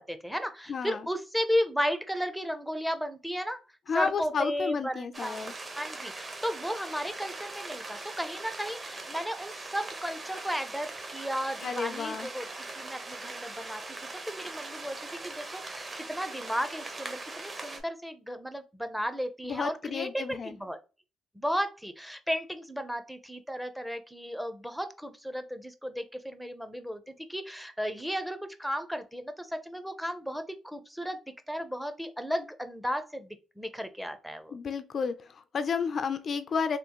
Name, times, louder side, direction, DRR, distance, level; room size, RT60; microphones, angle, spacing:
voice 1, 0.0-3.6 3.9-12.5 12.7-13.8 14.1-20.8 21.3-31.2 31.5-34.5, equal, ahead, 0.5 m, -34 dB
voice 2, 0.7-1.1 3.9-5.5 11.6-12.3 19.4-20.6 34.5-36.8, left 6 dB, 50° left, 0.3 m, -32 dB
sound 1, 5.1-17.8, right 2 dB, 25° right, 0.8 m, -41 dB
3.5 x 2.4 x 2.9 m
cardioid pair, 90°, 0 cm